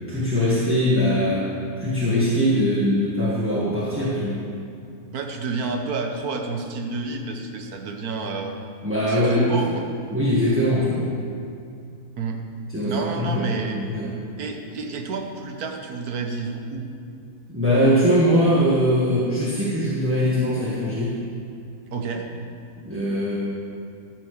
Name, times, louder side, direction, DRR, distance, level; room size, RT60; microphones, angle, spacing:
voice 1, 0.1-1.5 1.8-4.4 8.8-9.5 10.1-11.1 12.7-14.1 17.5-21.2 22.8-23.4, equal, 10° right, -7 dB, 1.3 m, -21 dB
voice 2, 5.1-8.6 9.1-9.9 12.2-12.4 12.8-13.8 14.4-16.9 21.9-22.3, right 4 dB, 75° right, 4 dB, 1.6 m, -29 dB
13.5 x 6.4 x 6.5 m, 2.4 s
omnidirectional pair, 1.6 m